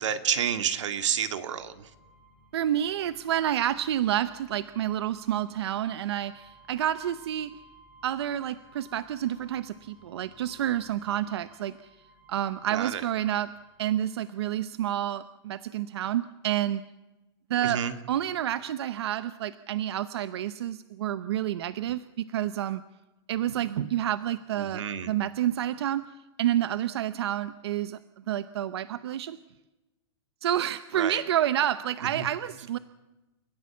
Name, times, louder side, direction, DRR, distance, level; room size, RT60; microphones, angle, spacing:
voice 1, 0.0-1.9 12.7-13.0 17.6-18.0 24.6-25.1 30.9-31.2 32.0-32.3, right 8 dB, 85° right, 9 dB, 2.2 m, -30 dB
sound 1, 1.5-15.0, right 1 dB, 5° right, 4.2 m, -58 dB
voice 2, 2.5-7.5 8.0-11.9 12.3-13.5 13.8-16.8 17.5-17.8 18.1-22.8 23.3-26.0 26.4-28.0 28.3-29.4 30.4-32.8, right 11 dB, 60° right, 14 dB, 0.8 m, -29 dB
29.5 x 15.5 x 7.2 m, 1.1 s
supercardioid pair, 180°, 15 cm